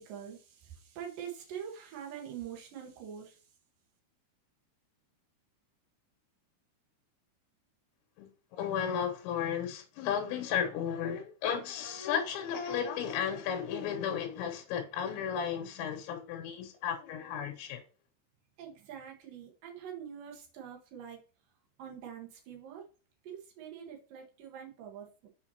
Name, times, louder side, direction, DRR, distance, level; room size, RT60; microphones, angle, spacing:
voice 1, 0.0-3.4 18.6-21.2 21.8-22.9 23.2-25.3, right 8 dB, 60° right, 2.5 m, -45 dB
voice 2, 8.2-17.8, left 8 dB, 75° left, 3.3 m, -34 dB
7.1 x 5.8 x 2.9 m
omnidirectional pair, 5.5 m